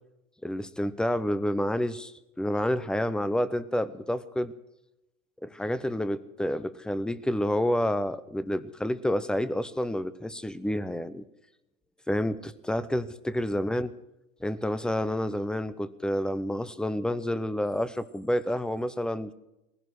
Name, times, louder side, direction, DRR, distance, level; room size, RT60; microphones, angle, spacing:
voice 1, 0.4-4.5 5.4-11.3 12.1-13.9 14.4-19.3, left 1 dB, ahead, 15 dB, 0.5 m, -29 dB
19.5 x 16.0 x 4.7 m, 0.89 s
hypercardioid pair, 125°, 43 cm